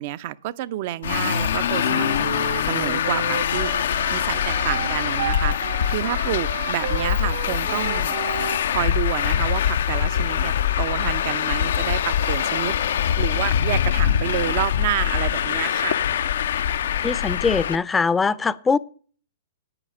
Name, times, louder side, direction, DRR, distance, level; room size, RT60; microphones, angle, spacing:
voice 1, 0.0-5.6 5.9-8.1 8.7-16.1, right 14 dB, 50° right, 0.6 m, -29 dB
Traffic noise roadway noise, 1.0-17.8, left 9 dB, 65° left, 0.5 m, -23 dB
Wind instrument woodwind instrument, 1.8-8.6, right 8 dB, 70° right, 1.3 m, -33 dB
sound 1, 12.2-12.3 13.0-13.1 15.2-15.3 16.0-16.2, left 9 dB, 85° left, 1.0 m, -31 dB
voice 2, 17.0-18.8, left 5 dB, 15° left, 0.6 m, -22 dB
9.8 x 9.3 x 6.1 m
hypercardioid pair, 115°, 0 cm